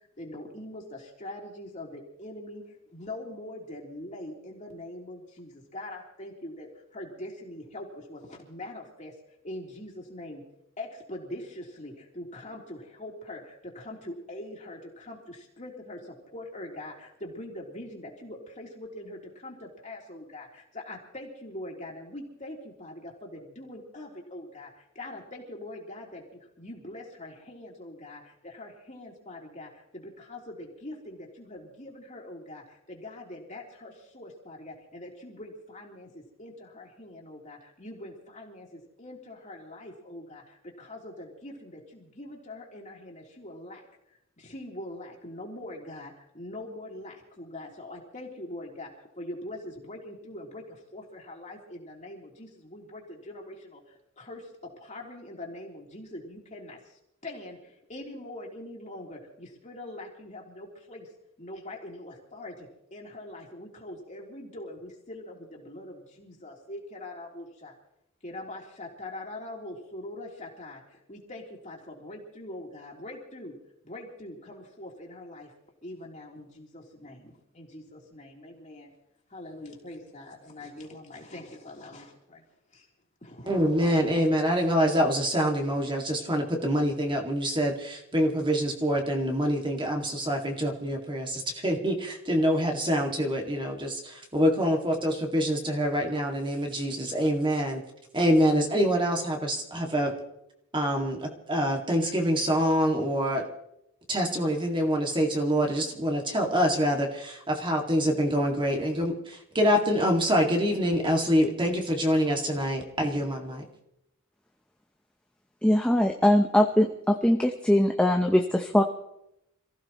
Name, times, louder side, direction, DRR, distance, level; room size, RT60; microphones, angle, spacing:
voice 1, 0.2-9.1 9.4-10.4 10.8-43.8 44.4-61.1 61.4-67.7 68.2-73.6 73.8-75.5 75.8-78.9 79.3-82.4 82.7-82.9 83.2-83.5, left 1 dB, 35° left, -2 dB, 3.3 m, -43 dB
voice 2, 83.5-97.8 98.1-100.1 100.7-103.4 104.1-113.6, equal, 20° right, 1 dB, 2.1 m, -26 dB
voice 3, 115.6-118.8, left 1 dB, 5° left, 3 dB, 0.7 m, -22 dB
27.5 x 15.5 x 3.1 m, 0.84 s
head